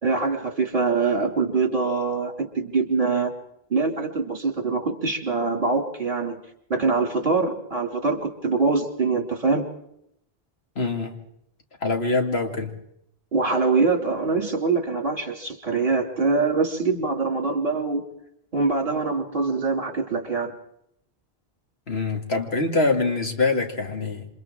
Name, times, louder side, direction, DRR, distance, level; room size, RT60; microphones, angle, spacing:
voice 1, 0.0-3.3 3.7-6.4 6.7-9.7 13.3-18.1 18.5-20.5, right 4 dB, 55° right, 2.8 m, -24 dB
voice 2, 10.8-11.1 11.8-12.8 21.9-24.3, left 3 dB, 85° left, 2.5 m, -24 dB
28.0 x 27.0 x 3.7 m
omnidirectional pair, 1.0 m